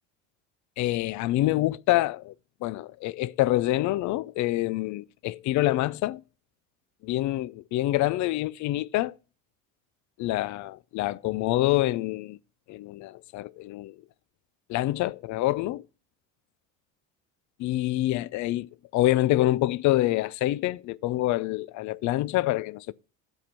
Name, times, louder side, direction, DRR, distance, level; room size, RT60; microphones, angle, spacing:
voice 1, 0.8-2.3 2.6-6.2 7.0-9.1 10.2-12.4 12.7-14.0 14.7-15.8 17.6-22.9, left 16 dB, 50° left, 0.5 m, -26 dB
7.7 x 4.5 x 7.1 m
supercardioid pair, 100°, 38 cm